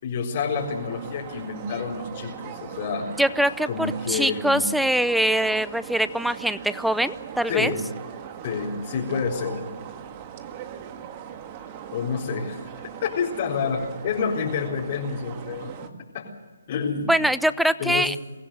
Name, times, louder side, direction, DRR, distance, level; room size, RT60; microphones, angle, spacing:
voice 1, 0.0-3.1 3.7-4.6 7.5-7.8 8.4-9.6 11.9-15.7 16.1-16.3 16.7-17.1 17.8-18.2, left 5 dB, 40° left, -3 dB, 4.1 m, -28 dB
sound 1, 0.5-15.9, right 9 dB, 30° right, 1.8 m, -40 dB
voice 2, 3.2-7.7 17.1-18.2, right 1 dB, ahead, 15 dB, 0.6 m, -23 dB
23.5 x 16.0 x 7.8 m, 1.3 s
hypercardioid pair, 150°, 0 cm